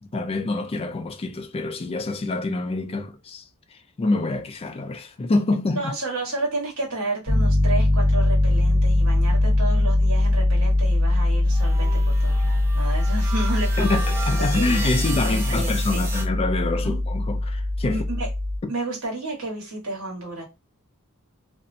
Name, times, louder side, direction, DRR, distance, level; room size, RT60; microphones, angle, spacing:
voice 1, 0.1-5.8 13.8-18.0, left 2 dB, 25° left, 0.3 m, -26 dB
voice 2, 5.7-14.0 14.4-14.9 15.2-16.0 16.8-17.0 17.8-18.3 18.7-20.4, right 2 dB, 85° right, 1.2 m, -31 dB
Piano, 7.3-18.6, left 1 dB, 60° right, 1.0 m, -21 dB
sound 1, 11.5-16.3, right 2 dB, 10° right, 0.7 m, -34 dB
2.6 x 2.1 x 2.6 m
head